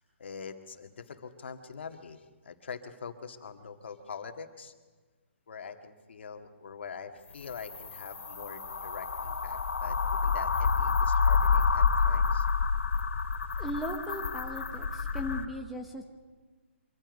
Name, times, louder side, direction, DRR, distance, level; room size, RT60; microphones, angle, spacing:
voice 1, 0.2-4.7 5.5-12.5, left 6 dB, 60° left, 5 dB, 2.0 m, -44 dB
sound 1, 7.3-15.5, left 5 dB, 85° left, 2.2 m, -28 dB
voice 2, 13.6-16.0, equal, ahead, 3 dB, 0.8 m, -37 dB
24.5 x 24.0 x 5.4 m, 1.3 s
hypercardioid pair, 170°, 7 cm